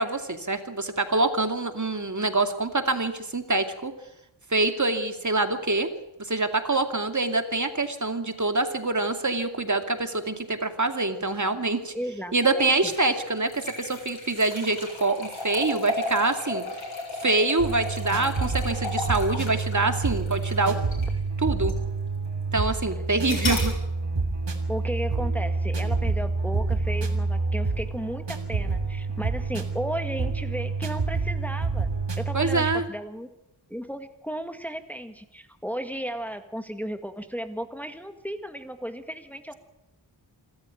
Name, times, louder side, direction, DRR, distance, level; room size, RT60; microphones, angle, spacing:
voice 1, 0.0-3.9 4.5-5.9 6.3-11.9 12.3-16.6 17.2-20.8 21.4-21.7 22.5-23.7 32.3-32.8, right 2 dB, 40° right, 6 dB, 2.5 m, -25 dB
voice 2, 11.9-12.7 23.3-23.7 24.7-31.9 32.2-33.3 33.7-39.5, equal, 5° left, 7 dB, 1.8 m, -34 dB
sound 1, 12.7-21.2 21.7-21.8 23.2-23.7, left 2 dB, 80° left, 7.8 m, -34 dB
sound 2, 17.6-32.8, right 3 dB, 65° right, 3.2 m, -28 dB
26.0 x 13.5 x 9.2 m, 0.92 s
cardioid pair, 40°, 46 cm